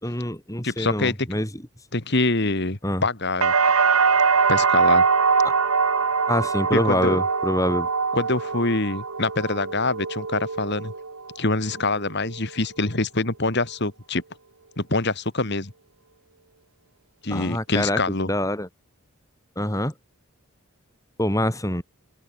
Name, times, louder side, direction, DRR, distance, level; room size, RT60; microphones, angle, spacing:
voice 1, 0.0-1.6 2.8-3.0 6.3-7.9 17.3-18.0 18.3-18.7 19.6-19.9 21.2-21.8, left 1 dB, 15° left, 7.0 m, -25 dB
voice 2, 0.6-1.3 1.9-3.5 4.5-5.1 6.7-7.2 8.1-10.9 11.4-14.2 14.8-15.7 17.2-18.3, left 2 dB, 50° left, 2.2 m, -25 dB
sound 1, 3.4-11.3 11.7-12.3, right 5 dB, 85° right, 1.5 m, -22 dB
open air
head